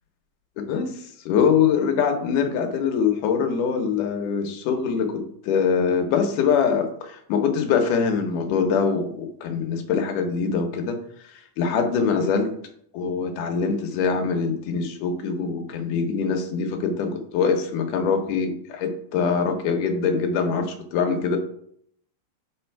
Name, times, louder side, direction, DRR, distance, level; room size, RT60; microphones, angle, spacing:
voice 1, 0.6-0.9 1.3-11.0 11.6-12.5 12.9-21.4, left 6 dB, 75° left, 5 dB, 2.3 m, -23 dB
7.2 x 4.4 x 4.5 m, 0.68 s
omnidirectional pair, 3.9 m